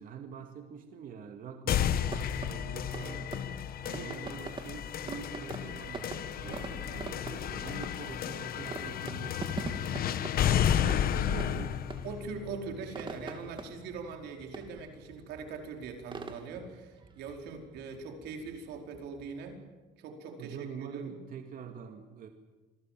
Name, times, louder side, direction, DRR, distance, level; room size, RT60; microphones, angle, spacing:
voice 1, 0.0-3.5 3.9-11.8 20.4-22.3, right 7 dB, 55° right, 5 dB, 2.3 m, -45 dB
sound 1, 1.7-13.6, left 10 dB, 60° left, 1.3 m, -32 dB
sound 2, 2.1-19.7, right 4 dB, 30° right, 3.1 m, -45 dB
voice 2, 3.8-4.2 6.3-6.6 10.3-11.5 12.0-19.6 20.0-21.2, right 5 dB, 85° right, 3 dB, 4.8 m, -42 dB
27.5 x 22.0 x 7.6 m, 1.2 s
cardioid pair, 110°, 17 cm